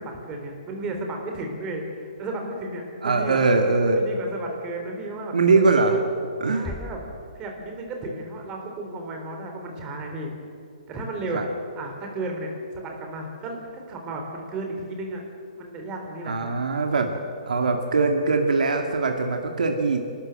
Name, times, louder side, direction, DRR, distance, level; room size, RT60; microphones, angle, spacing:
voice 1, 0.0-3.4 3.9-5.3 6.5-7.0 7.4-10.3 10.9-11.4 11.8-15.2 15.6-16.5, right 2 dB, 20° right, 2 dB, 3.8 m, -33 dB
voice 2, 3.0-4.0 5.3-6.0 6.4-6.7 11.3-11.5 16.2-17.1 17.5-20.0, right 3 dB, 90° right, 3 dB, 2.2 m, -21 dB
sound 1, 6.6-8.3, left 2 dB, 5° left, 1.1 m, -40 dB
28.5 x 13.0 x 7.8 m, 2.5 s
hypercardioid pair, 160°, 4 cm